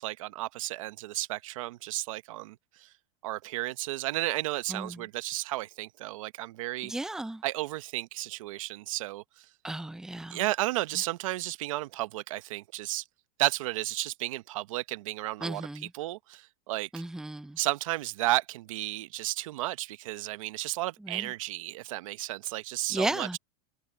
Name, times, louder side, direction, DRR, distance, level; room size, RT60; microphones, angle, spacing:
voice 1, 0.0-2.9 3.2-6.9 7.4-9.5 10.3-13.0 13.4-16.9 17.6-23.4, right 17 dB, 75° right, 1.1 m, -33 dB
voice 2, 6.9-7.4 9.6-10.4 15.4-15.8 16.9-17.6 22.9-23.4, right 2 dB, 5° right, 0.8 m, -33 dB
supercardioid pair, 130°, 17 cm